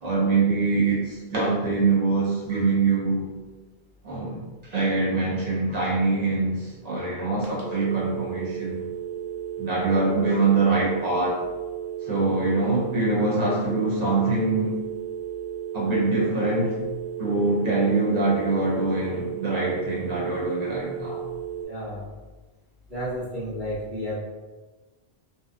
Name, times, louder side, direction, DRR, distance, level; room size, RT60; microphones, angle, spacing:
voice 1, 0.0-3.3 4.0-8.9 9.6-11.4 12.0-14.7 15.7-16.8 17.2-21.3, right 3 dB, 45° right, -5 dB, 0.8 m, -24 dB
sound 1, 7.4-21.7, right 9 dB, 50° left, 0.7 m, -34 dB
voice 2, 21.6-22.0 22.9-24.2, equal, 80° right, -8 dB, 1.4 m, -31 dB
2.8 x 2.2 x 2.4 m, 1.2 s
omnidirectional pair, 1.1 m